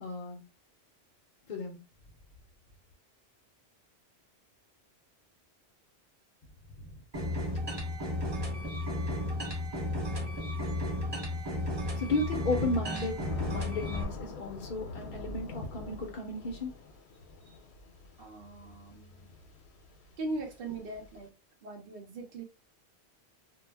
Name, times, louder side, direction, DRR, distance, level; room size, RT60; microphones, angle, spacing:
voice 1, 0.0-0.4 1.5-1.8 6.8-7.0 11.9-13.2 13.5-16.7, left 2 dB, 55° left, 0.6 m, -34 dB
sound 1, 7.1-14.0, left 1 dB, 25° right, 0.7 m, -33 dB
Thunder / Rain, 11.3-21.3, left 3 dB, 80° left, 0.8 m, -46 dB
voice 2, 18.2-19.3 20.2-21.3 21.6-22.4, right 2 dB, 65° right, 0.8 m, -40 dB
2.2 x 2.0 x 3.2 m
omnidirectional pair, 1.1 m